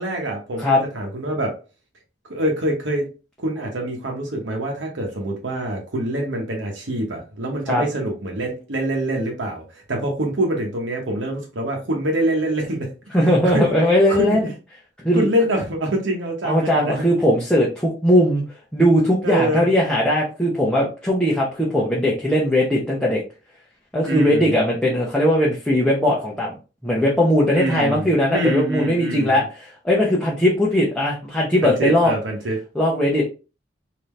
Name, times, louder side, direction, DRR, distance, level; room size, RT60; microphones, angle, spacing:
voice 1, 0.0-1.5 2.3-3.1 3.4-12.9 13.4-13.7 14.1-14.3 15.1-17.0 19.2-19.7 24.0-24.5 27.5-29.4 31.6-32.6, right 1 dB, 85° right, 1 dB, 1.0 m, -25 dB
voice 2, 13.1-14.5 15.0-15.3 16.4-18.4 18.7-23.2 23.9-26.5 26.8-32.1 32.7-33.2, equal, 5° left, -5 dB, 0.7 m, -19 dB
3.6 x 2.8 x 3.1 m, 0.32 s
head